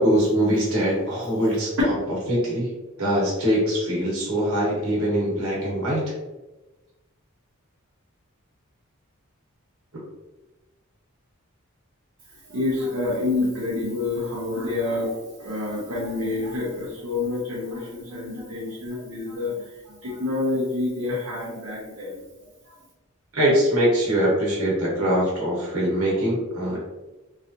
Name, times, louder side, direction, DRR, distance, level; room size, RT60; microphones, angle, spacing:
voice 1, 0.0-1.7 2.3-2.7 3.0-6.1 23.3-26.8, equal, 85° right, -5 dB, 1.2 m, -22 dB
voice 2, 12.5-22.2, left 2 dB, 70° right, -8 dB, 0.8 m, -28 dB
3.2 x 2.6 x 2.6 m, 1.1 s
head